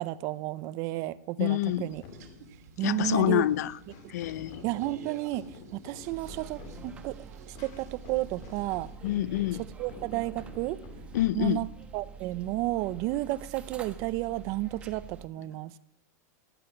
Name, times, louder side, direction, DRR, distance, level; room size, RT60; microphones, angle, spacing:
voice 1, 0.0-2.0 2.8-3.5 4.6-7.2 7.5-8.9 9.8-10.8 11.3-15.8, right 17 dB, 35° right, 0.6 m, -32 dB
voice 2, 1.4-1.9 2.8-3.8 4.1-4.6 9.0-9.6 11.1-11.7, left 14 dB, 70° left, 0.6 m, -27 dB
sound 1, 1.6-9.0, right 8 dB, 70° right, 2.6 m, -53 dB
sound 2, 1.9-13.3, left 5 dB, 40° left, 2.3 m, -50 dB
sound 3, 6.0-15.3, right 6 dB, 15° right, 1.2 m, -47 dB
15.0 x 9.7 x 9.1 m
supercardioid pair, 165°, 9 cm